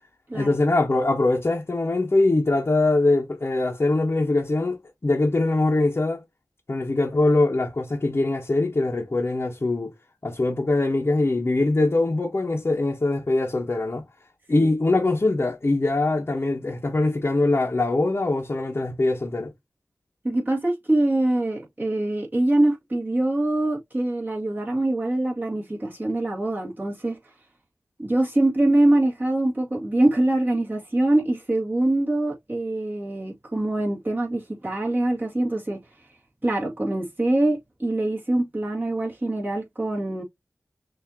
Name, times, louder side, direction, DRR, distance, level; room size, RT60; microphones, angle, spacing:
voice 1, 0.3-6.2 6.7-9.9 10.2-14.0 14.5-19.5, left 2 dB, 45° left, 1.1 m, -22 dB
voice 2, 20.2-27.2 28.0-35.8 36.4-40.2, right 1 dB, 35° right, 2.1 m, -24 dB
6.0 x 2.8 x 2.8 m
wide cardioid pair, 50°, 6 cm